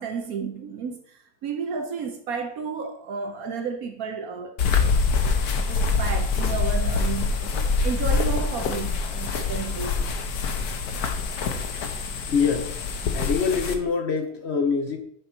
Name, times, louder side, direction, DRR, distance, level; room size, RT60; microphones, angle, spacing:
voice 1, 0.0-5.4 5.7-10.0, right 5 dB, 70° right, 1.2 m, -32 dB
sound 1, 4.6-13.7, left 4 dB, 75° left, 1.4 m, -25 dB
voice 2, 12.3-12.8 13.1-15.0, left 5 dB, 50° left, 1.1 m, -25 dB
6.8 x 4.2 x 5.9 m
omnidirectional pair, 1.7 m